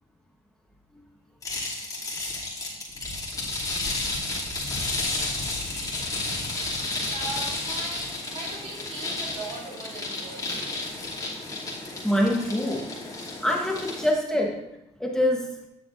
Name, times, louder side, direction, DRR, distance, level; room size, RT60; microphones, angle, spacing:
sound 1, 1.4-14.1, left 2 dB, 30° left, 2.7 m, -32 dB
voice 1, 4.0-4.3 5.9-6.0 7.1-10.7, right 3 dB, 60° right, -4 dB, 2.6 m, -39 dB
voice 2, 12.0-12.9 13.4-14.6 15.0-15.5, left 1 dB, 5° left, 0 dB, 1.1 m, -25 dB
9.8 x 6.7 x 2.6 m, 0.84 s
cardioid pair, 90°, 12 cm